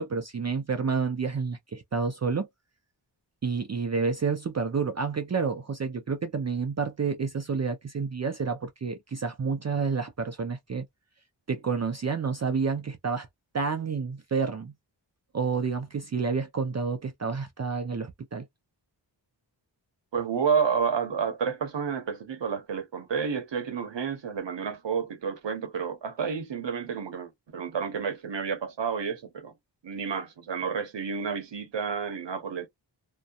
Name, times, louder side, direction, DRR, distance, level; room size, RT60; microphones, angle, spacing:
voice 1, 0.0-2.5 3.4-10.9 11.5-13.3 13.5-14.7 15.3-18.5, right 5 dB, 40° right, 0.4 m, -29 dB
voice 2, 20.1-29.5 29.8-32.7, right 6 dB, 75° right, 0.9 m, -30 dB
2.7 x 2.2 x 2.3 m
wide cardioid pair, 95°, 44 cm